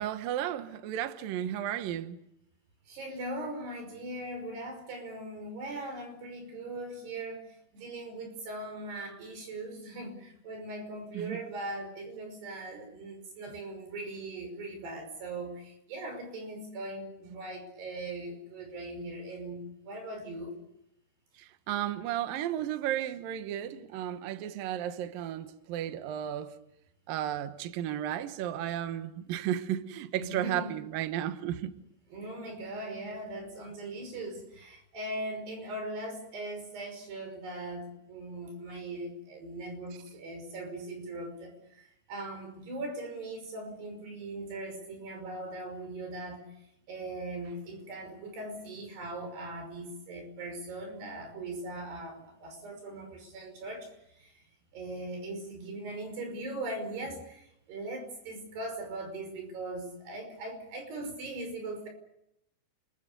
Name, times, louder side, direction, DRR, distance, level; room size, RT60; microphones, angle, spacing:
voice 1, 0.0-2.2 11.1-11.4 21.7-26.5 27.1-31.7, right 11 dB, 75° right, 2.1 m, -33 dB
voice 2, 2.9-7.5 7.7-20.6 30.2-30.8 32.1-46.4 46.9-53.9 54.1-54.3 54.7-61.9, right 2 dB, 55° right, 7.4 m, -40 dB
29.5 x 22.0 x 6.8 m
omnidirectional pair, 5.7 m